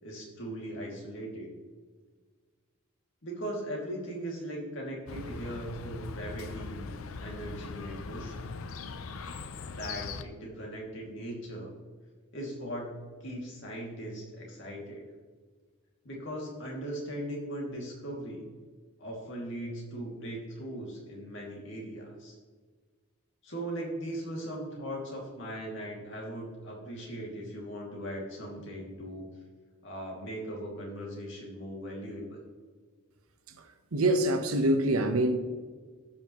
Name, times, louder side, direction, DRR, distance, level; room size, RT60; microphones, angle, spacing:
voice 1, 0.0-1.5 3.2-6.9 7.2-8.4 9.7-11.7 12.3-15.0 16.0-18.4 19.0-22.4 23.4-29.3 29.8-32.4, right 1 dB, 60° left, -2 dB, 2.5 m, -39 dB
Chirp tweet, 5.1-10.2, left 4 dB, 75° left, 0.6 m, -40 dB
voice 2, 33.9-35.4, right 1 dB, 85° right, 7 dB, 1.0 m, -25 dB
16.0 x 5.7 x 3.1 m, 1.5 s
head